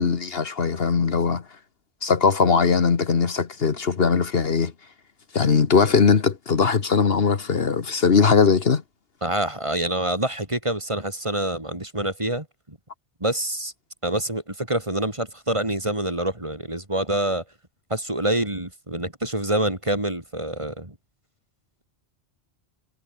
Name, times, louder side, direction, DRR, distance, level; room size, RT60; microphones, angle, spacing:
voice 1, 0.0-1.4 2.0-4.7 5.3-8.8, left 5 dB, 60° left, 1.5 m, -20 dB
voice 2, 9.2-12.8 13.2-13.7 14.0-17.4 17.9-21.0, right 1 dB, 25° right, 3.3 m, -26 dB
omnidirectional pair, 1.1 m